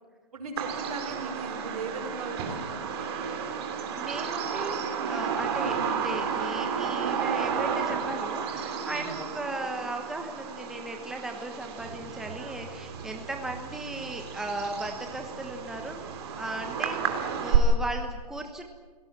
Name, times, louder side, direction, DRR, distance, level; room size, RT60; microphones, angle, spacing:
voice 1, 0.3-2.9 8.8-9.2, right 3 dB, 65° right, 4 dB, 5.9 m, -38 dB
Bird vocalization bird call bird song, 0.6-17.6, right 7 dB, 40° right, 3.2 m, -32 dB
voice 2, 3.9-16.0 16.4-18.6, right 2 dB, ahead, 3 dB, 1.2 m, -37 dB
26.0 x 18.0 x 7.5 m, 1.4 s
hypercardioid pair, 150°, 20 cm